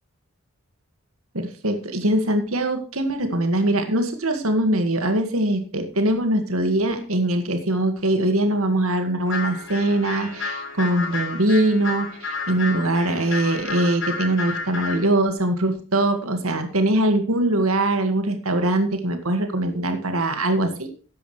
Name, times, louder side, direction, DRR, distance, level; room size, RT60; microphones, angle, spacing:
voice 1, 1.3-20.9, right 1 dB, 85° right, 6 dB, 2.0 m, -22 dB
sound 1, 9.3-15.1, left 4 dB, 65° left, 5.1 m, -31 dB
14.5 x 10.5 x 3.3 m, 0.38 s
head